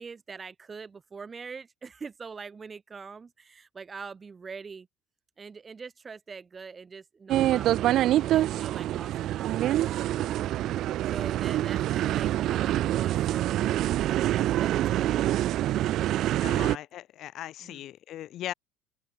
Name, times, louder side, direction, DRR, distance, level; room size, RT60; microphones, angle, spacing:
voice 1, 0.0-4.9 5.4-10.4 11.1-15.5 17.6-17.8, right 5 dB, 25° right, 5.6 m, -44 dB
sound 1, 7.3-16.8, right 13 dB, 55° right, 0.5 m, -26 dB
voice 2, 16.4-18.5, left 13 dB, 55° left, 1.4 m, -38 dB
open air
supercardioid pair, 85°, 0 cm